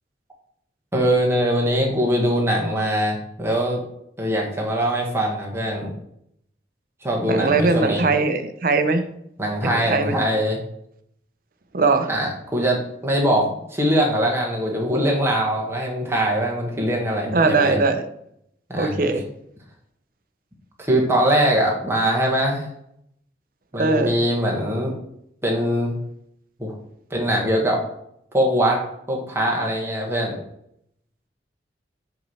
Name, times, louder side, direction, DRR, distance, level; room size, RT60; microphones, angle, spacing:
voice 1, 0.9-3.8 4.2-5.9 7.0-8.0 9.4-10.6 12.1-17.8 18.7-19.2 20.8-22.7 23.7-24.9 25.4-26.0 26.6-26.7 27.1-27.8 28.3-28.8 29.1-30.4, equal, 15° right, -1 dB, 1.3 m, -22 dB
voice 2, 7.2-9.1 9.7-10.2 11.7-12.1 17.3-18.1 18.8-19.2 23.8-24.2, right 3 dB, 50° right, 8 dB, 0.6 m, -20 dB
5.7 x 3.1 x 5.5 m, 0.73 s
head